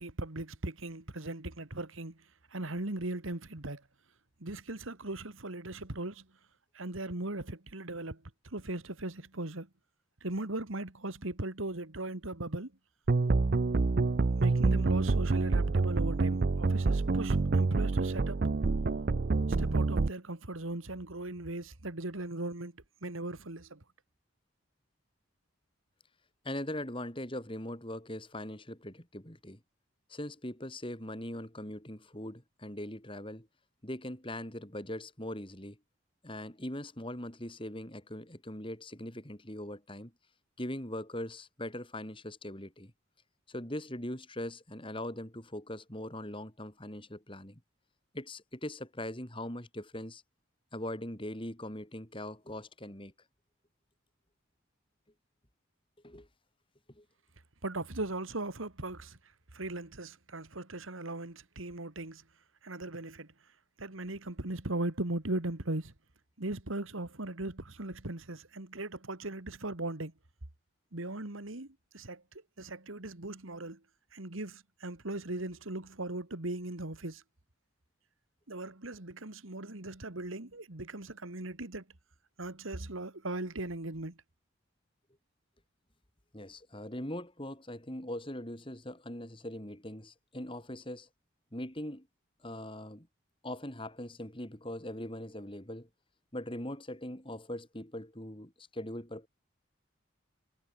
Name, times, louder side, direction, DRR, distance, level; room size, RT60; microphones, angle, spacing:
voice 1, 0.0-2.2 2.5-3.8 4.4-6.3 6.7-9.7 10.2-12.7 14.4-18.5 19.6-23.8 57.6-59.2 59.5-62.2 62.6-63.3 63.8-65.9 66.4-70.1 70.9-72.2 72.6-73.8 74.1-77.2 78.5-81.8 82.4-84.2, right 2 dB, 75° right, 2.2 m, -38 dB
sound 1, 13.1-20.1, right 3 dB, 45° right, 0.5 m, -27 dB
voice 2, 26.4-29.6 30.1-33.5 33.8-35.8 36.2-40.1 40.6-42.9 43.5-47.6 48.1-50.2 50.7-53.1 56.0-56.3 57.0-57.1 86.3-91.1 91.5-92.1 92.4-93.1 93.4-95.9 96.3-99.3, left 1 dB, 25° left, 3.7 m, -41 dB
head